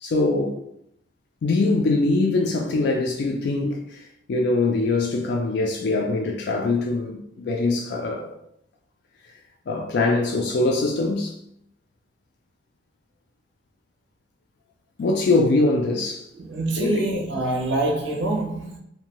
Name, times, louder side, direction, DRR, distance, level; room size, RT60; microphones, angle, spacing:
voice 1, 0.0-0.5 1.4-4.0 4.3-8.3 9.7-11.3 15.0-16.2 16.8-17.0, left 2 dB, 60° left, 0.3 m, -22 dB
voice 2, 16.3-18.8, right 2 dB, 80° right, 0.6 m, -25 dB
2.6 x 2.1 x 2.9 m
head